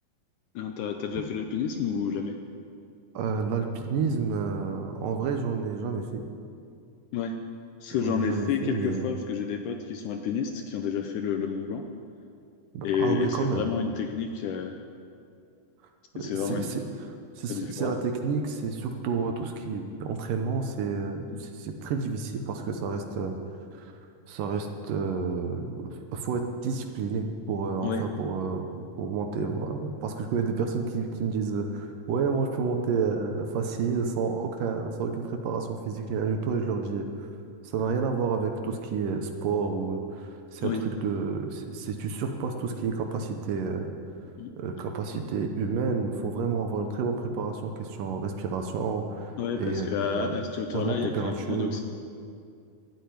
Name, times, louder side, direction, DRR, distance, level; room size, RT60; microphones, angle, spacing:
voice 1, 0.6-2.4 7.1-7.3 7.8-11.8 12.8-14.8 16.2-16.7 17.5-17.9 21.3-21.4 27.8-28.0 40.6-40.8 44.4-44.5 49.4-51.8, left 6 dB, 75° left, 5 dB, 1.9 m, -30 dB
voice 2, 3.1-6.2 8.0-9.1 12.7-13.7 16.2-16.8 17.4-23.3 23.8-23.9 24.3-37.3 37.6-43.9 44.6-50.3 50.7-51.7, right 5 dB, 70° right, 5 dB, 2.4 m, -30 dB
12.5 x 8.9 x 9.5 m, 2.4 s
omnidirectional pair, 4.2 m